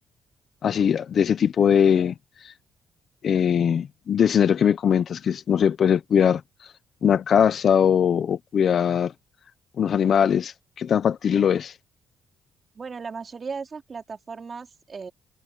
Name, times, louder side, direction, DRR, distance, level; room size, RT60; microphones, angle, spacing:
voice 1, 0.6-2.1 3.2-6.4 7.0-9.1 9.8-11.7, left 8 dB, 55° left, 1.1 m, -21 dB
voice 2, 12.7-15.1, right 5 dB, 40° right, 3.2 m, -36 dB
cardioid pair, 90°, 0 cm